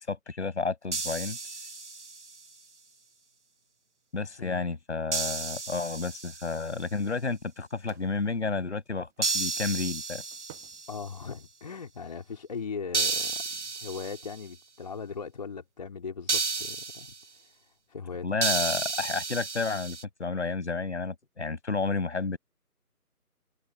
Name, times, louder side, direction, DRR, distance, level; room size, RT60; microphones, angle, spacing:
voice 1, 0.1-1.4 4.1-10.2 18.2-22.4, left 4 dB, 45° left, 7.9 m, -31 dB
sound 1, 0.9-2.4 5.1-6.7 9.2-11.1 12.9-14.4 16.3-17.2 18.4-20.0, right 4 dB, 50° right, 1.3 m, -32 dB
sound 2, 5.0-5.6 6.9-9.4 10.2-11.5 12.0-12.2, right 19 dB, ahead, 1.3 m, -56 dB
voice 2, 10.9-17.1 17.4-18.4, left 5 dB, 25° left, 3.8 m, -39 dB
figure-of-eight pair, 160°, 46 cm